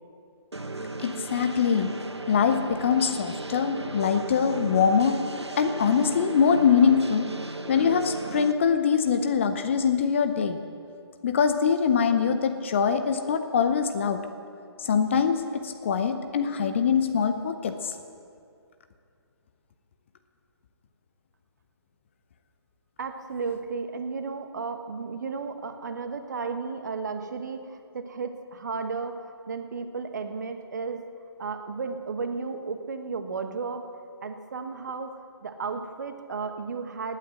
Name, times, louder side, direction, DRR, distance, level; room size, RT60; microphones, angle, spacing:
sound 1, 0.5-8.5, right 2 dB, 80° right, 1.1 m, -36 dB
voice 1, 1.0-1.9 2.3-5.2 5.6-7.3 7.7-10.6 11.2-14.2 14.8-17.9, left 6 dB, 25° left, 8 dB, 0.7 m, -23 dB
voice 2, 23.0-31.0 31.4-33.9 34.2-35.1 35.4-37.2, right 4 dB, 40° right, 8 dB, 1.1 m, -34 dB
18.5 x 9.2 x 7.7 m, 2.4 s
figure-of-eight pair, 145°, 14 cm